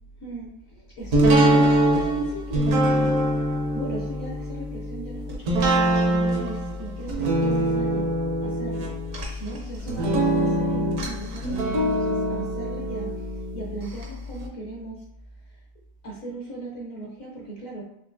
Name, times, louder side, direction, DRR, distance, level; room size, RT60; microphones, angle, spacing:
voice 1, 0.2-3.2 3.7-8.1 8.4-8.9 9.4-13.3 13.5-15.0 16.0-17.8, right 2 dB, 65° left, -3 dB, 0.9 m, -37 dB
sound 1, 1.1-14.0 14.4-14.5, right 1 dB, 60° right, 1.0 m, -23 dB
4.4 x 2.5 x 2.5 m, 0.85 s
omnidirectional pair, 1.9 m